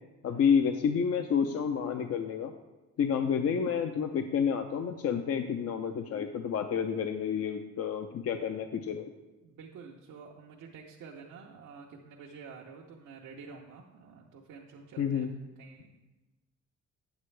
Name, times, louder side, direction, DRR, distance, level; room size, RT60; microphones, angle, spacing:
voice 1, 0.2-2.5 3.0-9.1 15.0-15.3, left 7 dB, 55° left, 6 dB, 0.6 m, -29 dB
voice 2, 9.4-16.0, right 5 dB, 80° right, -2 dB, 0.9 m, -49 dB
9.3 x 8.0 x 3.3 m, 1.1 s
cardioid pair, 90°, 30 cm